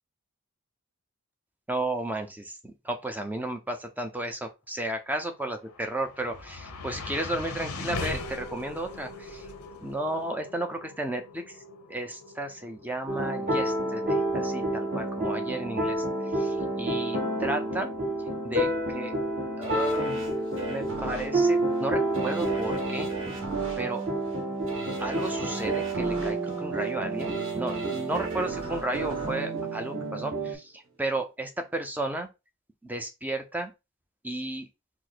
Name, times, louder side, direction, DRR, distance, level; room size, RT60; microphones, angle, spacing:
voice 1, 1.7-9.5 9.8-11.6 11.9-16.0 16.3-17.9 18.2-19.1 19.6-20.2 20.7-23.1 23.8-24.0 25.0-32.3 32.8-33.7 34.2-34.7, right 1 dB, 10° right, 0.6 m, -33 dB
sound 1, 5.4-17.7, left 3 dB, 85° left, 0.9 m, -41 dB
sound 2, 13.1-30.5, right 2 dB, 40° right, 1.5 m, -29 dB
sound 3, 19.6-30.6 31.0-31.1, right 3 dB, 60° right, 1.3 m, -39 dB
4.7 x 2.1 x 4.0 m
head